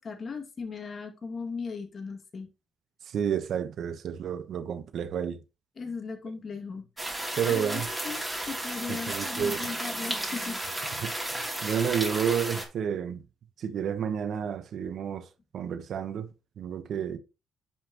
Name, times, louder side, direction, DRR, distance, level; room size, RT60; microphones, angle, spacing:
voice 1, 0.0-2.5 5.8-6.9 7.5-8.2 8.5-10.6, left 5 dB, 45° left, 2.2 m, -37 dB
voice 2, 3.1-5.4 7.4-7.9 8.9-9.6 11.0-11.1 11.6-13.2 13.6-15.3 15.5-16.3 16.6-17.2, right 8 dB, 65° right, 1.0 m, -30 dB
sound 1, 7.0-12.6, right 1 dB, 15° right, 3.0 m, -33 dB
10.5 x 5.8 x 3.0 m
cardioid pair, 90°, 0 cm